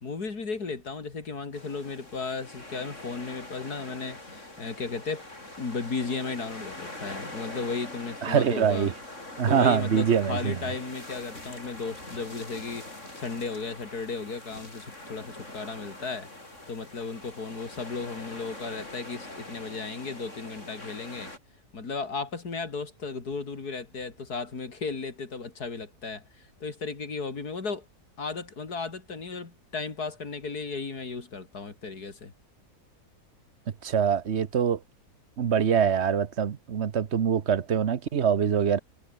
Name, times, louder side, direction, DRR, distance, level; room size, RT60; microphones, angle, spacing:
voice 1, 0.0-5.2 5.6-8.9 9.5-16.3 16.7-21.3 21.7-27.9 28.2-32.3, left 4 dB, 85° left, 3.6 m, -35 dB
sound 1, 1.5-21.4, left 2 dB, 50° left, 6.8 m, -43 dB
voice 2, 8.2-8.9 9.4-10.6 33.8-34.8 35.4-38.8, right 8 dB, 50° right, 1.2 m, -24 dB
omnidirectional pair, 1.6 m